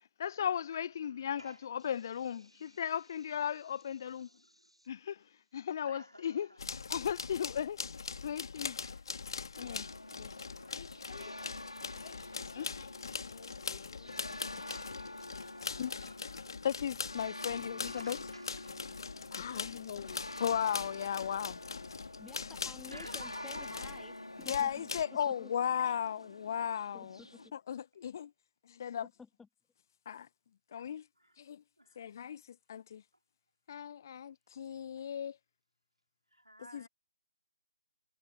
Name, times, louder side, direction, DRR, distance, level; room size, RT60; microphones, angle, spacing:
voice 1, 0.2-4.3 4.9-5.2 5.5-6.5 6.9-7.8 8.2-8.8 9.6-10.3 10.7-11.2 12.0-12.9 13.3-14.1 14.6-14.7 15.8-15.9 16.6-18.2 19.3-21.6 24.5-27.2 27.5-28.3 28.7-29.1 30.1-30.3 30.7-31.0 31.4-31.6 32.0-32.4 32.7-33.0 33.7-35.4 36.7-36.9, left 8 dB, 40° left, 1.3 m, -36 dB
voice 2, 1.0-5.0 5.8-6.6 8.1-8.3 8.8-9.1 10.1-11.7 12.3-12.6 14.3-16.7 17.9-18.8 22.9-24.1 28.0-28.1 31.2-31.4 31.8-32.0 36.3-36.9, equal, 90° right, 4.6 m, -56 dB
sound 1, 6.6-24.0 24.4-25.1, left 5 dB, 55° left, 2.2 m, -42 dB
sound 2, 9.5-27.5, left 1 dB, 80° left, 3.4 m, -48 dB
voice 3, 22.2-24.9 25.4-25.5 26.9-27.5 29.2-29.5, left 5 dB, 5° left, 3.1 m, -53 dB
figure-of-eight pair, 140°, 3 cm